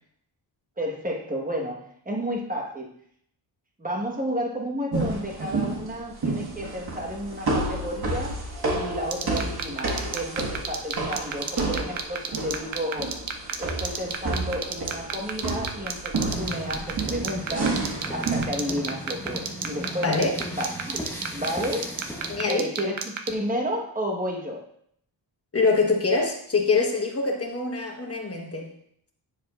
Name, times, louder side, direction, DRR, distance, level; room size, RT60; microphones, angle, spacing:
voice 1, 0.8-2.9 3.8-8.4 8.7-13.2 13.6-17.8 18.1-20.2 20.6-21.0 21.3-21.9 22.5-24.6, equal, 20° right, 0 dB, 1.3 m, -31 dB
sound 1, 4.9-18.4, right 2 dB, 55° right, 1.7 m, -30 dB
sound 2, 9.1-23.3, right 8 dB, 80° right, 0.9 m, -29 dB
sound 3, 16.3-22.4, equal, 5° left, 0.9 m, -37 dB
voice 2, 20.0-20.4 22.3-22.7 25.5-28.7, left 4 dB, 30° left, 1 dB, 1.3 m, -24 dB
9.8 x 7.1 x 2.5 m, 0.67 s
wide cardioid pair, 165°, 46 cm